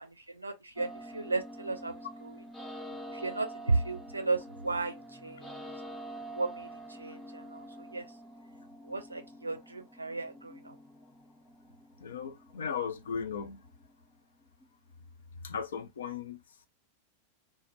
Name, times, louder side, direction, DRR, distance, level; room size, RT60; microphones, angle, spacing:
voice 1, 0.0-2.4 3.1-5.6 6.3-8.1 8.8-10.8, right 3 dB, 80° right, 0.4 m, -35 dB
sound 1, 0.8-14.7, right 1 dB, 10° left, 0.6 m, -47 dB
voice 2, 12.0-13.6 15.3-16.7, left 6 dB, 65° left, 0.4 m, -37 dB
2.2 x 2.1 x 2.7 m
figure-of-eight pair, 90°, 0 cm